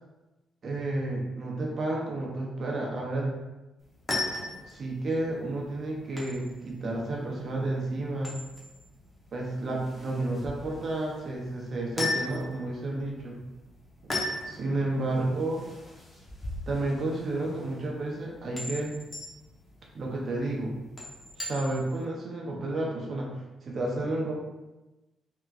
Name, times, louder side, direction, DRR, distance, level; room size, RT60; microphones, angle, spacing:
voice 1, 0.6-3.3 4.6-8.4 9.3-13.4 14.4-15.6 16.7-19.0 19.9-20.7 21.4-23.3 23.6-24.3, right 2 dB, 50° right, -2 dB, 0.6 m, -31 dB
sound 1, 3.8-22.0, left 2 dB, 20° left, 0.9 m, -38 dB
3.4 x 2.8 x 2.4 m, 1.1 s
cardioid pair, 90°, 0 cm